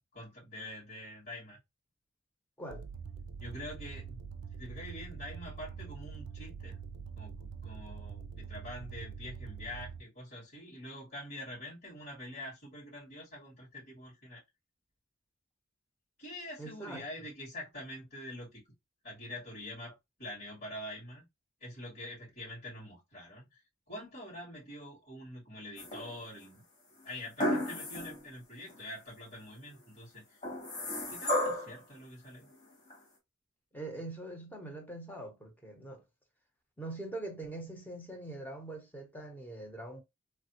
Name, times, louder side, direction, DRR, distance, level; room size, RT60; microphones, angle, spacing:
voice 1, 0.1-1.6 3.4-4.2 4.6-6.8 7.2-14.4 16.2-18.6 19.0-21.3 21.6-23.6 23.9-26.6 27.0-30.4 31.1-32.5, left 1 dB, 55° left, 2.0 m, -45 dB
sound 1, 2.7-10.0, right 6 dB, 65° right, 0.4 m, -44 dB
voice 2, 16.6-17.1 33.7-36.0 36.8-40.0, right 2 dB, 10° left, 0.9 m, -43 dB
sound 2, 25.8-26.4 27.4-28.2 28.7-28.8 30.4-31.8 32.9-33.0, left 1 dB, 35° left, 1.5 m, -33 dB
3.2 x 2.3 x 2.8 m
head